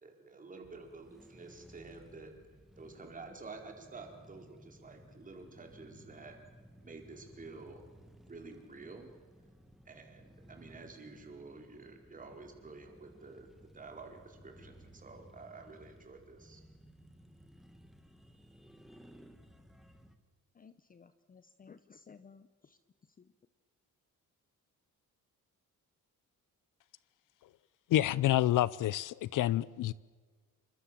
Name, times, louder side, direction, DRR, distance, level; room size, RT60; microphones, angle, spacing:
voice 1, 0.0-2.3 2.7-6.4 6.8-7.8 8.3-9.1 9.9-16.6, right 3 dB, 25° right, 3 dB, 4.5 m, -50 dB
sound 1, 0.6-20.2, equal, ahead, 1.9 m, -58 dB
voice 2, 20.5-22.8 23.2-23.3, left 5 dB, 25° left, 12 dB, 0.9 m, -57 dB
voice 3, 27.9-29.9, left 13 dB, 65° left, 20 dB, 0.7 m, -28 dB
28.0 x 25.0 x 7.6 m, 1.5 s
cardioid pair, 165°, 34 cm